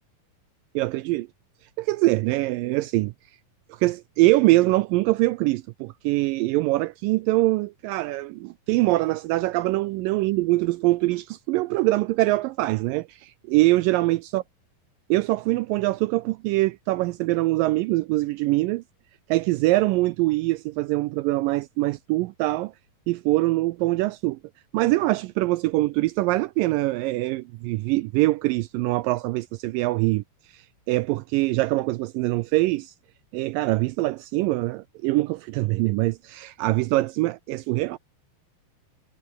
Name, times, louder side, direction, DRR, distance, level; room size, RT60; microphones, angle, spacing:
voice 1, 0.8-1.3 1.8-3.1 3.7-14.4 15.1-18.8 19.3-22.7 23.1-24.4 24.7-30.2 30.5-32.9 33.3-38.0, right 19 dB, 85° right, 2.0 m, -23 dB
omnidirectional pair, 4.4 m